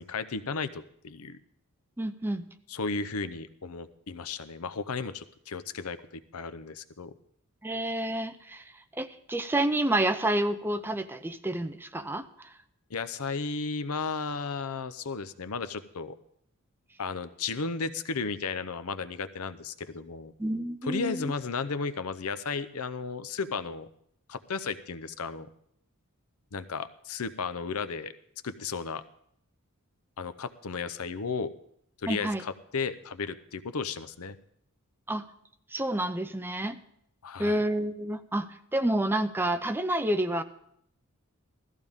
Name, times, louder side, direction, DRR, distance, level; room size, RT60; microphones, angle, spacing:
voice 1, 0.0-1.4 2.7-6.0 6.3-7.1 12.9-16.1 17.0-20.3 20.8-23.9 24.3-25.5 26.5-28.1 28.4-29.0 30.2-31.5 32.0-34.4 37.2-37.6, left 4 dB, 75° left, 12 dB, 0.7 m, -34 dB
voice 2, 2.0-2.5 7.6-8.6 9.0-12.5 20.4-21.3 32.1-32.4 35.1-35.2 35.7-36.8 37.4-40.4, right 1 dB, 10° right, 9 dB, 0.5 m, -29 dB
16.5 x 14.0 x 3.6 m, 0.70 s
head